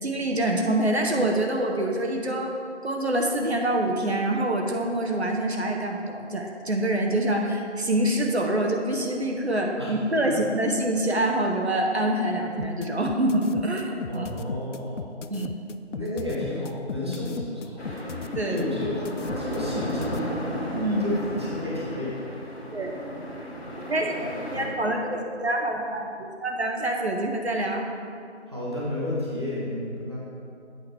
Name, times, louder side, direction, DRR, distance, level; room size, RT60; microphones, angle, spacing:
voice 1, 0.0-2.5 2.8-14.3 15.3-15.5 18.3-18.6 20.7-21.1 22.7-22.9 23.9-27.8, right 1 dB, 65° right, 1 dB, 0.9 m, -26 dB
sound 1, 12.6-20.2, left 6 dB, 80° left, 0.5 m, -36 dB
voice 2, 14.1-15.0 15.9-18.1 18.5-19.1 19.4-20.6 21.0-22.2 28.5-30.2, left 1 dB, 20° right, -7 dB, 0.9 m, -32 dB
sound 2, 17.8-24.7, equal, 60° left, 1.7 m, -33 dB
8.4 x 5.1 x 4.5 m, 2.4 s
figure-of-eight pair, 165°, 36 cm